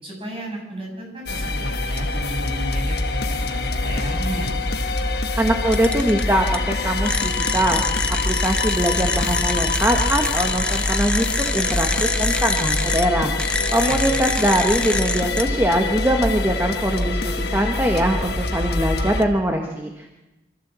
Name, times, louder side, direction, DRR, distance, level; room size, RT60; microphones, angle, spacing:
voice 1, 0.0-4.5 13.8-14.1, equal, 30° right, -1 dB, 7.1 m, -33 dB
sound 1, 1.3-19.2, left 2 dB, 70° left, 1.4 m, -25 dB
voice 2, 5.4-7.8 8.1-13.3 13.7-20.1, right 1 dB, 15° right, 3 dB, 1.4 m, -22 dB
sound 2, 5.7-6.2 6.5-6.6 7.0-13.0 13.4-15.4, left 2 dB, 5° left, 0.7 m, -26 dB
25.0 x 14.0 x 7.6 m, 1.0 s
head